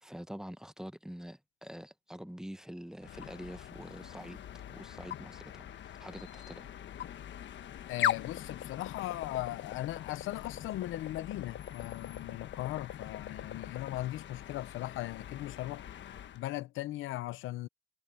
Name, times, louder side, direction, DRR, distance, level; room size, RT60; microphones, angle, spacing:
voice 1, 0.0-4.4 4.7-6.7, equal, 5° right, 0.9 m, -46 dB
sound 1, 3.0-16.4, left 10 dB, 65° left, 1.3 m, -41 dB
voice 2, 7.9-15.9 16.3-17.7, left 16 dB, 90° left, 0.8 m, -38 dB
cardioid pair, 90°, 20 cm